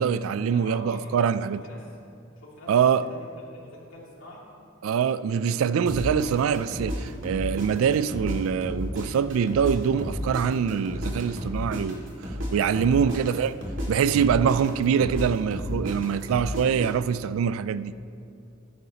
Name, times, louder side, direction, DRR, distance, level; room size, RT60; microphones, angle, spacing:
voice 1, 0.0-1.6 2.7-3.1 4.8-12.0 12.5-13.5 13.9-17.9, right 7 dB, 85° right, 0.3 m, -24 dB
voice 2, 0.5-1.9 2.4-3.3 3.5-4.4 12.5-13.3, left 1 dB, 75° left, 2.2 m, -45 dB
sound 1, 5.9-8.4 8.6-12.5 12.7-16.9, equal, 65° right, 2.1 m, -32 dB
15.0 x 9.5 x 2.9 m
head